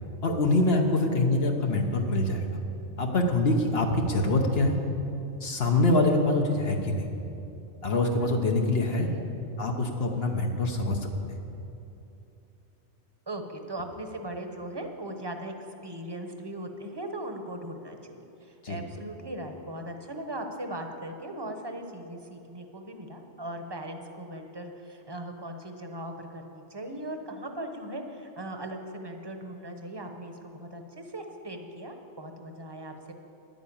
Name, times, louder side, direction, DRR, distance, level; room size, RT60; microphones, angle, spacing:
voice 1, 0.2-2.5 3.0-4.7 5.4-7.1 7.8-9.1 9.6-11.4 18.6-18.8, left 2 dB, 60° left, 2 dB, 1.3 m, -25 dB
voice 2, 13.3-15.5 15.8-33.1, right 1 dB, 25° right, 5 dB, 1.0 m, -39 dB
10.5 x 9.4 x 8.7 m, 2.9 s
omnidirectional pair, 1.2 m